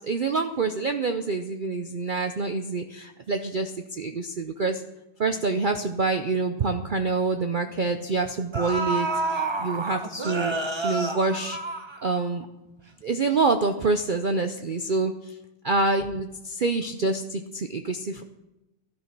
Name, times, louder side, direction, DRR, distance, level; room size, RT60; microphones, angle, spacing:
voice 1, 0.0-4.8 5.2-10.5 10.8-11.6 12.0-12.5 13.0-15.1 15.6-18.2, right 3 dB, 75° right, 7 dB, 0.4 m, -26 dB
sound 1, 6.8-7.0 8.0-8.1 8.5-12.5 12.8-12.9, right 2 dB, 20° right, 0.7 m, -29 dB
13.5 x 11.5 x 6.0 m, 0.95 s
omnidirectional pair, 1.9 m